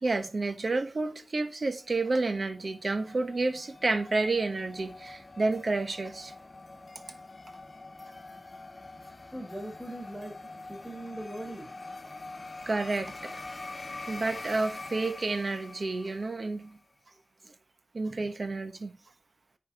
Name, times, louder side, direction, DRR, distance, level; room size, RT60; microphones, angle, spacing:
voice 1, 0.0-6.3 7.1-7.2 12.7-13.4 14.1-16.8 17.9-18.9, right 3 dB, 55° right, 1.0 m, -30 dB
sound 1, 2.0-16.6, left 2 dB, 45° left, 1.2 m, -45 dB
voice 2, 9.3-10.4 10.7-11.7, right 1 dB, 15° right, 4.2 m, -40 dB
9.4 x 4.9 x 4.8 m
wide cardioid pair, 85°, 0 cm